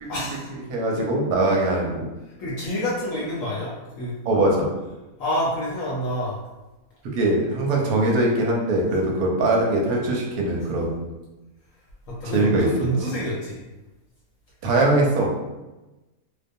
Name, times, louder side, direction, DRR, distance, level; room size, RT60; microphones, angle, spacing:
voice 1, 0.1-0.5 2.2-4.1 5.2-6.4 12.1-13.7, equal, 70° left, -6 dB, 0.9 m, -28 dB
voice 2, 0.7-2.1 4.3-4.7 7.0-11.0 12.3-12.7 13.0-13.1 14.6-15.4, right 2 dB, 85° right, -1 dB, 1.1 m, -21 dB
2.4 x 2.2 x 2.6 m, 1.1 s
omnidirectional pair, 1.5 m